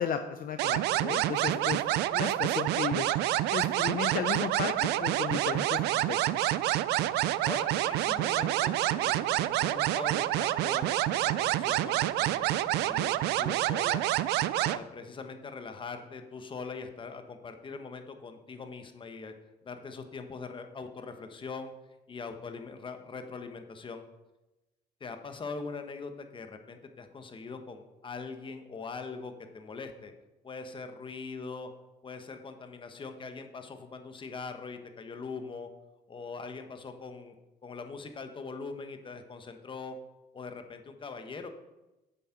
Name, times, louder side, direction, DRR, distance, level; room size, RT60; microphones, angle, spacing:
voice 1, 0.0-1.8 2.1-3.1 3.5-6.2, left 8 dB, 55° left, 8 dB, 0.7 m, -34 dB
sound 1, 0.6-14.8, right 14 dB, 80° right, 0.4 m, -28 dB
voice 2, 6.9-14.0 14.6-19.3 19.6-21.7 22.1-24.0 25.0-30.1 30.4-31.7 32.0-35.7 36.1-37.3 37.6-40.0 40.3-41.5, left 4 dB, 30° left, 7 dB, 1.2 m, -42 dB
8.1 x 7.6 x 5.9 m, 1.0 s
cardioid pair, 110°, 17 cm